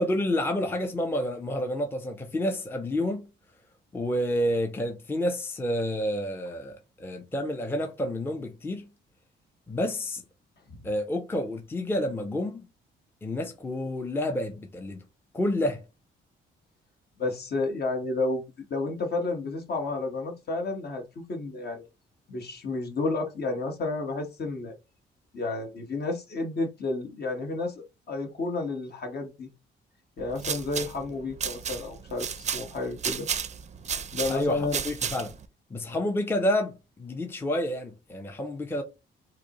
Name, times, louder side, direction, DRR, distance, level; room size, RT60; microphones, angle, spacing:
voice 1, 0.0-3.3 3.9-8.9 9.7-10.2 10.8-12.7 13.2-15.0 15.3-15.8 34.3-35.3 35.7-38.8, left 1 dB, 10° left, 0.5 m, -29 dB
voice 2, 17.2-18.4 18.7-21.9 22.3-24.7 25.3-29.5 30.2-33.3 34.1-34.8, left 3 dB, 55° left, 1.2 m, -31 dB
sound 1, 30.2-35.5, right 7 dB, 35° right, 0.4 m, -33 dB
4.8 x 2.0 x 2.9 m
cardioid pair, 90°, 20 cm